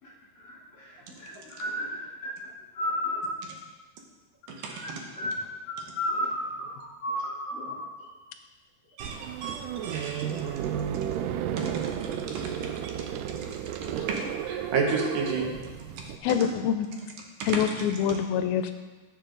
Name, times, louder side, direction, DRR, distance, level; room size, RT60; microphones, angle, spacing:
voice 1, 0.0-2.5 2.7-3.3 4.7-8.1 10.7-10.8, left 1 dB, 40° left, -6 dB, 4.1 m, -34 dB
voice 2, 9.0-10.2 11.6-11.7 12.3-12.9 14.1-15.5 16.4-16.5 17.4-17.6 18.1-18.2, right 4 dB, 70° right, 1 dB, 2.6 m, -31 dB
sound 1, 9.0-16.2, right 9 dB, 90° right, 1.8 m, -33 dB
voice 3, 16.2-16.9 17.5-18.7, left 9 dB, 85° left, 8 dB, 2.4 m, -25 dB
14.5 x 7.1 x 3.9 m, 1.3 s
omnidirectional pair, 4.4 m